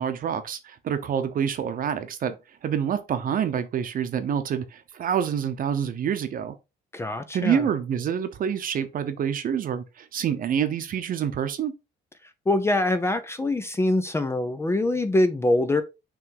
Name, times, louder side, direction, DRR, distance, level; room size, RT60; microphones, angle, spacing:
voice 1, 0.0-2.4 2.6-6.5 7.3-11.7, right 8 dB, 50° right, 0.9 m, -27 dB
voice 2, 6.9-7.7 12.5-15.8, left 2 dB, 15° left, 0.5 m, -24 dB
6.2 x 3.4 x 4.8 m
cardioid pair, 160°, 18 cm